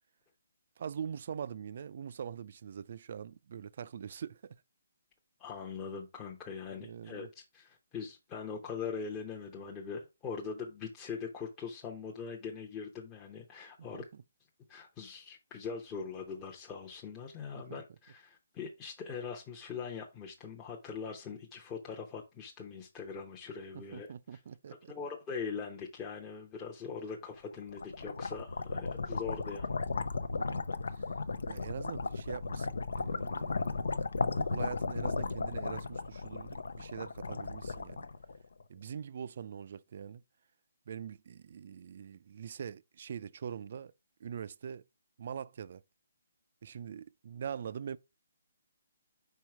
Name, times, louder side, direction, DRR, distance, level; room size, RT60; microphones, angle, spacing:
voice 1, 0.8-4.6 6.8-7.3 13.9-14.0 17.5-17.8 23.7-24.9 30.3-31.1 31.5-33.9 34.2-38.1 38.7-40.2 40.9-43.9 44.2-44.8 45.2-45.8 46.6-48.0, right 7 dB, 50° right, 0.4 m, -43 dB
voice 2, 5.4-14.0 14.7-24.1 24.3-24.4 24.9-29.7, left 5 dB, 15° left, 0.7 m, -42 dB
sound 1, 27.5-38.6, left 4 dB, 80° left, 0.6 m, -35 dB
4.7 x 4.6 x 4.7 m
hypercardioid pair, 160°, 0 cm